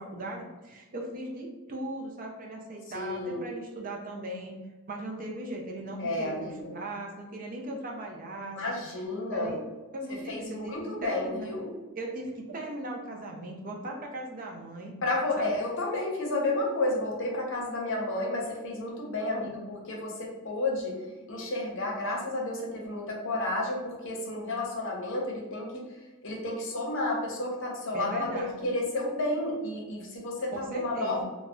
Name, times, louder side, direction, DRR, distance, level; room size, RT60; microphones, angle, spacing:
voice 1, 0.0-4.6 4.9-8.7 9.3-9.6 9.9-11.5 12.0-14.9 15.4-15.6 19.3-19.6 27.9-28.6 30.5-31.2, right 1 dB, 40° right, 1 dB, 0.4 m, -38 dB
voice 2, 2.9-3.5 6.0-6.8 8.6-9.6 10.1-11.8 15.0-19.5 19.9-21.0 21.3-25.8 26.2-31.2, left 2 dB, 60° left, -1 dB, 0.7 m, -31 dB
2.3 x 2.1 x 3.5 m, 1.2 s
head